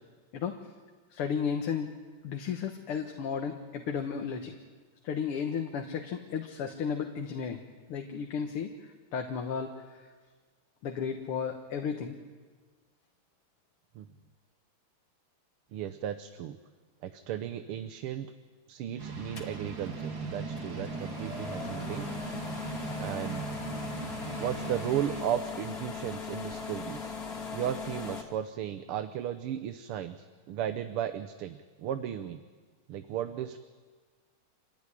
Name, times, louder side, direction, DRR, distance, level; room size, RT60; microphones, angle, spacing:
voice 1, 1.1-1.9 2.2-4.5 5.0-7.6 7.9-8.7 9.1-9.7 10.8-12.2, left 7 dB, 90° left, 4 dB, 2.3 m, -33 dB
voice 2, 15.7-16.6 17.0-18.3 18.7-22.1 23.0-23.5 24.4-27.1 27.5-32.4 32.9-33.6, right 10 dB, 85° right, 10 dB, 1.8 m, -35 dB
sound 1, 19.0-25.2, right 4 dB, 60° right, 3.0 m, -39 dB
sound 2, 19.4-28.2, left 5 dB, 45° left, 2.7 m, -40 dB
27.0 x 16.5 x 9.9 m, 1.5 s
omnidirectional pair, 2.4 m